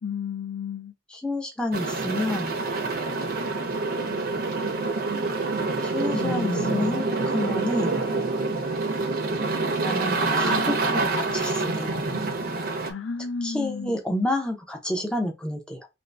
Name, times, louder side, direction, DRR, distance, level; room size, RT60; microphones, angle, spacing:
voice 1, 0.0-0.9 6.1-7.0 12.9-14.0, left 4 dB, 65° left, 0.4 m, -32 dB
voice 2, 1.1-2.5 5.8-8.0 9.8-12.0 13.4-15.9, left 1 dB, 5° left, 0.5 m, -29 dB
sound 1, 1.7-12.9, right 3 dB, 50° right, 0.6 m, -27 dB
2.9 x 2.6 x 3.2 m
head